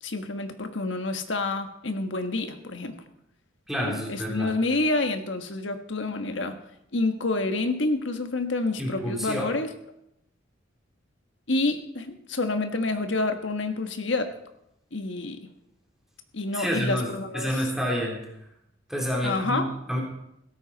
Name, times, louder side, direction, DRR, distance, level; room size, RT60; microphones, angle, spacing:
voice 1, 0.0-3.0 3.8-6.6 6.9-9.7 11.5-14.3 14.9-15.4 16.3-17.5 19.2-19.7, left 2 dB, 65° left, 7 dB, 1.5 m, -28 dB
voice 2, 3.7-4.5 8.8-9.5 16.5-18.2 18.9-20.0, equal, ahead, -2 dB, 3.3 m, -29 dB
16.5 x 13.0 x 4.1 m, 0.80 s
head